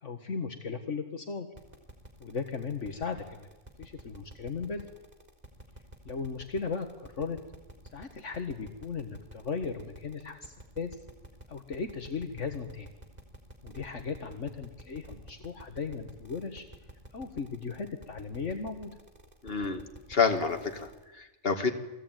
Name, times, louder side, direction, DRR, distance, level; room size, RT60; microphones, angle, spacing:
voice 1, 0.0-1.5 2.2-3.5 3.8-4.9 6.1-7.4 7.9-11.0 11.5-12.9 13.6-16.7 17.1-18.9, left 5 dB, 65° left, 6 dB, 2.0 m, -36 dB
sound 1, 1.6-21.0, right 1 dB, 30° right, 3.9 m, -50 dB
voice 2, 19.4-19.8 20.1-21.7, left 5 dB, 50° left, 5 dB, 2.5 m, -28 dB
28.5 x 20.5 x 9.2 m, 1.0 s
omnidirectional pair, 1.3 m